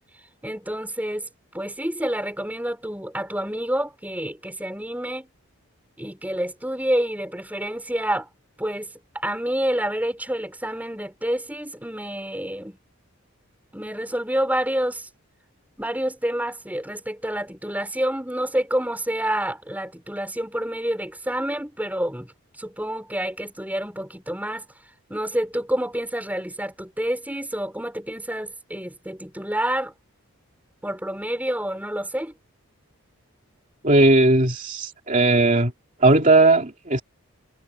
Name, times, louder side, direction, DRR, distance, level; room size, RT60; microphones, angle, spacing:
voice 1, 0.4-1.3 1.5-5.3 6.0-8.3 8.6-12.8 13.7-15.1 15.8-22.3 22.6-24.7 25.1-29.9 30.8-32.3, right 1 dB, 5° right, 4.9 m, -28 dB
voice 2, 33.8-35.7 36.0-37.0, right 2 dB, 35° right, 2.6 m, -17 dB
head